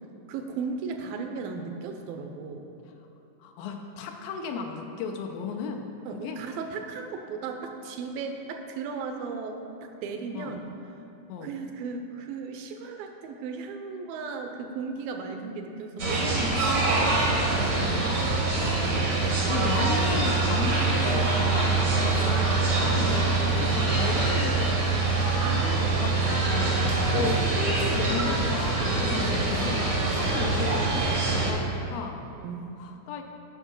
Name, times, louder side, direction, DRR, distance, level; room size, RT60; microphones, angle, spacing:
voice 1, 0.3-2.7 6.1-10.6 11.4-16.8 21.4-21.6 22.8-23.1 25.2-26.4 32.4-32.7, right 4 dB, 80° right, 5 dB, 2.5 m, -36 dB
voice 2, 3.4-5.9 6.2-6.4 10.3-10.5 11.3-11.5 17.6-25.5 26.0-26.2 27.1-32.2 32.8-33.2, left 5 dB, 85° left, 3 dB, 2.4 m, -35 dB
sound 1, 16.0-31.5, right 3 dB, 65° right, 0.8 m, -24 dB
9.2 x 5.8 x 6.1 m, 2.7 s
omnidirectional pair, 4.1 m